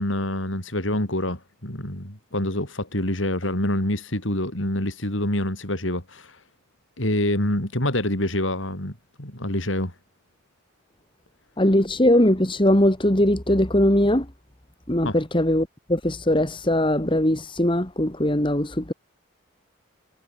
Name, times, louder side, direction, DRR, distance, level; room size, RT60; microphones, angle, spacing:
voice 1, 0.0-6.4 7.0-9.9 15.0-15.2, left 1 dB, 75° left, 6.5 m, -26 dB
voice 2, 11.6-14.3 14.9-18.9, left 1 dB, 25° left, 2.6 m, -20 dB
head